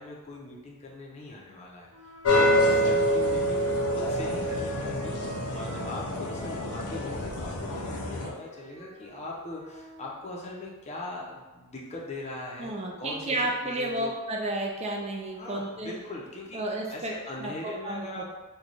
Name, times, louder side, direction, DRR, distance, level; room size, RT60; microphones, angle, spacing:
voice 1, 0.0-12.7 13.0-13.4 13.6-14.1 15.4-16.6 16.9-18.3, left 2 dB, 30° left, -3 dB, 0.5 m, -40 dB
Wind instrument woodwind instrument, 1.9-5.9 6.1-10.1, left 1 dB, 80° right, 1.1 m, -45 dB
sound 1, 2.2-8.3, equal, 85° left, 0.5 m, -26 dB
voice 2, 12.6-15.9 16.5-17.1 17.4-18.3, right 1 dB, 30° right, 1 dB, 0.4 m, -32 dB
3.1 x 2.2 x 3.9 m, 1.2 s
head